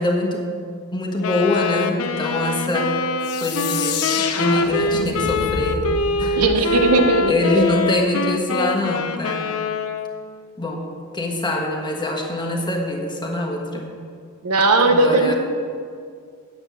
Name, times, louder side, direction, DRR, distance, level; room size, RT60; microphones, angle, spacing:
voice 1, 0.0-2.9 3.4-5.9 6.2-6.8 7.3-9.5 10.6-10.8 11.1-14.0 14.8-15.3, left 1 dB, 20° left, 1 dB, 1.4 m, -24 dB
Wind instrument woodwind instrument, 1.2-10.3, left 3 dB, 65° left, 0.6 m, -24 dB
sound 1, 3.2-7.8, left 5 dB, 85° left, 0.9 m, -29 dB
voice 2, 6.4-7.3 14.4-15.3, right 3 dB, 85° right, 5 dB, 1.1 m, -17 dB
8.8 x 7.6 x 7.7 m, 2.2 s
head